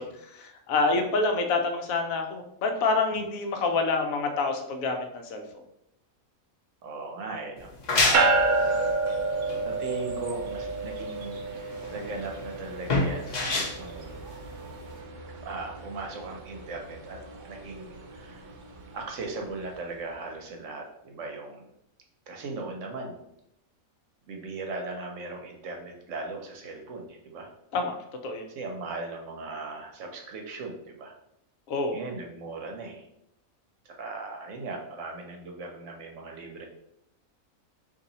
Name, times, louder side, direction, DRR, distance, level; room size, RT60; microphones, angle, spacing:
voice 1, 0.0-5.6 27.7-28.0 28.2-28.5 31.7-32.0, left 3 dB, 75° left, 5 dB, 1.0 m, -27 dB
voice 2, 6.8-8.9 9.6-13.4 13.8-14.2 15.4-17.2 17.5-18.4 18.9-21.7 22.3-23.2 24.3-27.5 28.6-31.1 31.9-33.1 33.8-36.6, right 3 dB, 65° right, 2 dB, 0.9 m, -38 dB
sound 1, 7.6-15.0, left 2 dB, 40° left, 0.7 m, -29 dB
sound 2, 8.1-19.7, right 3 dB, 90° right, 0.4 m, -31 dB
2.8 x 2.6 x 3.9 m, 0.78 s
omnidirectional pair, 1.5 m